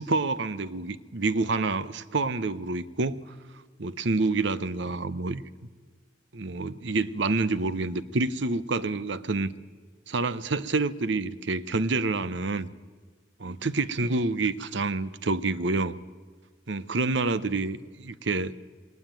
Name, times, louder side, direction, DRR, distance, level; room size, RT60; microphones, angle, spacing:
voice 1, 0.0-3.2 3.8-5.4 6.3-9.5 10.1-12.7 13.4-16.0 16.7-18.5, right 3 dB, 65° right, 16 dB, 0.8 m, -28 dB
21.0 x 18.5 x 9.0 m, 1.5 s
head